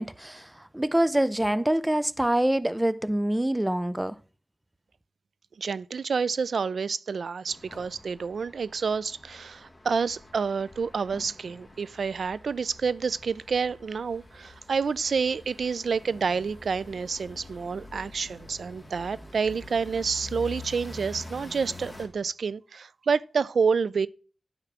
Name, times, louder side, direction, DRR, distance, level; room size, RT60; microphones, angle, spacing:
voice 1, 0.0-4.2, right 1 dB, 10° right, 0.4 m, -25 dB
voice 2, 5.6-24.1, right 5 dB, 80° right, 0.3 m, -28 dB
sound 1, 7.5-22.1, left 2 dB, 15° left, 1.7 m, -46 dB
10.0 x 3.6 x 5.9 m
wide cardioid pair, 95°, 0 cm